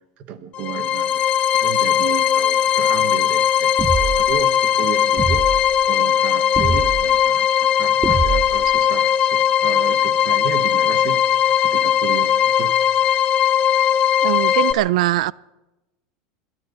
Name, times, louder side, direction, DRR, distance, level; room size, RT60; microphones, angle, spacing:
voice 1, 0.2-1.2 1.5-5.4 5.9-11.2 11.6-12.8, right 8 dB, 40° right, 1.3 m, -33 dB
sound 1, 0.5-14.7, left 9 dB, 30° left, 0.7 m, -18 dB
sound 2, 3.8-4.4 5.2-5.6 6.5-7.1 8.0-8.7, right 4 dB, 15° right, 0.5 m, -23 dB
voice 2, 14.2-15.3, right 16 dB, 80° right, 0.4 m, -20 dB
27.5 x 12.5 x 4.0 m
supercardioid pair, 165°, 4 cm